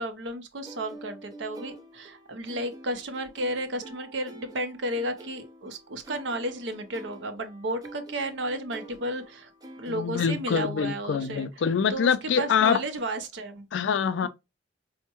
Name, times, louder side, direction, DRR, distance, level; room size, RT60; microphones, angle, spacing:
voice 1, 0.0-9.5 9.8-13.7 14.2-14.3, right 1 dB, 70° right, 0.6 m, -33 dB
sound 1, 0.6-10.6, right 1 dB, 20° right, 0.5 m, -47 dB
voice 2, 9.9-12.8 13.7-14.3, left 7 dB, 70° left, 0.3 m, -25 dB
4.4 x 2.1 x 2.8 m
head